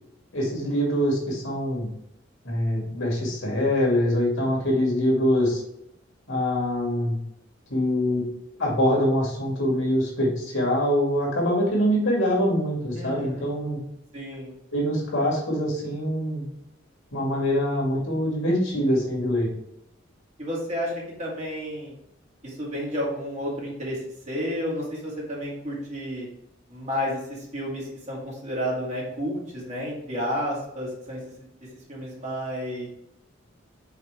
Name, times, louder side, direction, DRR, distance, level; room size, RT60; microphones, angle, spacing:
voice 1, 0.3-1.9 2.4-5.6 6.3-7.2 7.7-8.2 8.6-13.8 14.7-16.4 17.1-19.5, equal, 70° left, -3 dB, 2.4 m, -24 dB
voice 2, 13.0-13.5 14.1-14.5 20.4-21.9 22.4-24.0 24.3-26.3 26.7-31.2 31.9-32.9, equal, 35° right, -5 dB, 2.2 m, -31 dB
5.7 x 4.9 x 3.4 m, 0.79 s
head